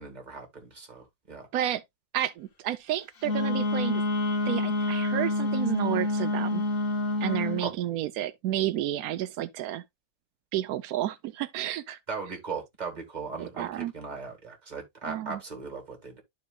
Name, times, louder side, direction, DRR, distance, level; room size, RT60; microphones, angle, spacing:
voice 1, 0.0-1.5 7.6-7.7 12.1-16.2, right 4 dB, 30° right, 1.8 m, -38 dB
voice 2, 2.1-4.0 4.5-6.6 7.2-9.8 10.5-12.0 13.6-13.9 15.0-15.4, right 12 dB, 85° right, 1.1 m, -31 dB
Wind instrument woodwind instrument, 3.2-7.6, left 2 dB, 45° left, 1.1 m, -27 dB
12.5 x 4.4 x 2.3 m
omnidirectional pair, 1.5 m